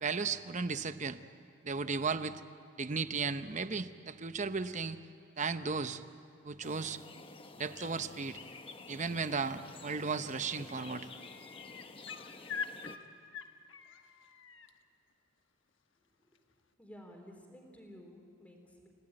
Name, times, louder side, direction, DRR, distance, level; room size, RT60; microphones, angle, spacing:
voice 1, 0.0-1.2 1.6-2.4 2.8-5.0 5.4-6.0 6.4-7.0 7.6-8.4 8.9-11.1, right 4 dB, 35° right, 11 dB, 0.8 m, -35 dB
sound 1, 6.6-13.0, left 3 dB, 25° left, 1.0 m, -50 dB
sound 2, 10.0-10.3 10.6-14.7 16.3-16.4, left 6 dB, 65° left, 1.2 m, -44 dB
voice 2, 16.8-18.9, equal, 5° left, 1 dB, 3.6 m, -53 dB
30.0 x 17.0 x 8.9 m, 2.7 s
head